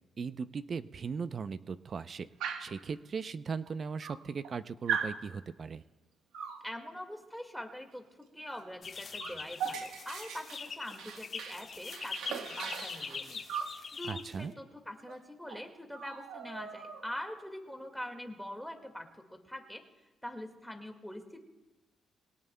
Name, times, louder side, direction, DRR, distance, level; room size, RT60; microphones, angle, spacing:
voice 1, 0.2-2.3 2.6-5.8 14.0-14.5, right 5 dB, 45° right, 14 dB, 0.5 m, -38 dB
Dog, 2.4-2.8 3.7-3.8 4.0-4.5 4.9-5.2 6.3-6.6 8.5-8.6 8.9-11.6 11.9-13.8 15.1-15.2 15.5-15.7 15.9-17.2, right 7 dB, 85° right, 1.2 m, -39 dB
voice 2, 6.6-8.1 8.3-13.4 13.9-19.8 20.2-21.4, left 1 dB, ahead, 4 dB, 1.9 m, -44 dB
sound 1, 8.8-14.5, left 5 dB, 45° left, 1.2 m, -43 dB
22.5 x 18.0 x 2.2 m, 1.1 s
cardioid pair, 90°, 0 cm